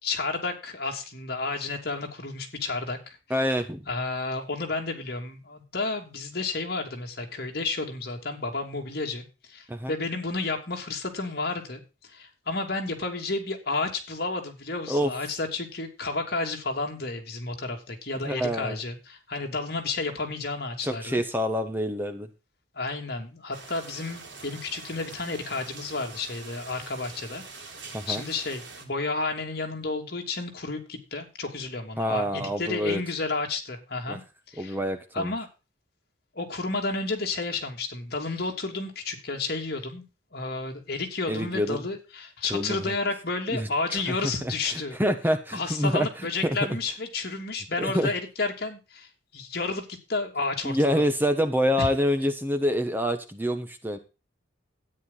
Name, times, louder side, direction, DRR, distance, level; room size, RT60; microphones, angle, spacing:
voice 1, 0.0-3.2 3.9-11.8 12.1-21.2 22.7-27.4 28.1-34.2 34.5-34.8 35.1-35.5 36.3-40.0 40.3-45.0 45.5-51.0 51.8-51.9, left 3 dB, 55° left, 3 dB, 2.9 m, -31 dB
voice 2, 3.3-3.8 9.7-9.9 14.9-15.1 18.2-18.8 20.8-22.3 27.9-28.2 32.0-33.0 34.1-34.2 34.6-35.3 41.3-41.8 42.5-42.9 43.5-46.1 46.4-46.6 47.8-48.1 50.6-54.0, equal, 10° right, 8 dB, 1.2 m, -27 dB
sound 1, 23.5-28.9, right 4 dB, 70° right, 4.1 m, -44 dB
13.0 x 9.7 x 4.0 m, 0.30 s
head